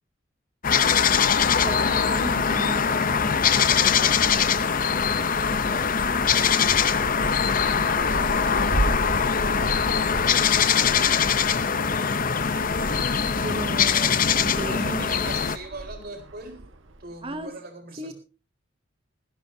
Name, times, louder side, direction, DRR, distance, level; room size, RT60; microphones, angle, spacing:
sound 1, 0.6-15.6, left 7 dB, 45° left, 0.7 m, -22 dB
voice 1, 1.5-4.7 13.4-15.3 17.2-17.6 18.0-18.1, right 1 dB, 30° right, 9 dB, 0.9 m, -36 dB
Wind, 2.5-17.4, right 1 dB, 70° right, 1.3 m, -36 dB
voice 2, 5.6-5.9 8.0-11.1 14.6-16.6 17.0-18.1, right 2 dB, 50° right, 4 dB, 4.1 m, -42 dB
18.5 x 15.5 x 2.8 m, 0.35 s
head